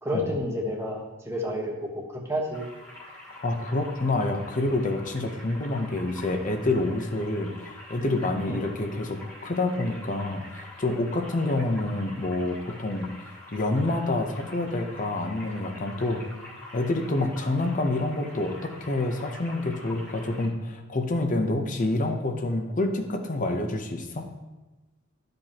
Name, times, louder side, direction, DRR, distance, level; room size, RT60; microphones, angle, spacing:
voice 1, 0.0-2.6 8.5-8.6, equal, 15° right, -1 dB, 1.2 m, -30 dB
sound 1, 2.5-20.5, left 2 dB, 10° left, 1.7 m, -45 dB
voice 2, 3.4-16.2 16.7-24.3, left 2 dB, 40° left, 6 dB, 0.7 m, -28 dB
12.0 x 5.2 x 2.9 m, 1.1 s
head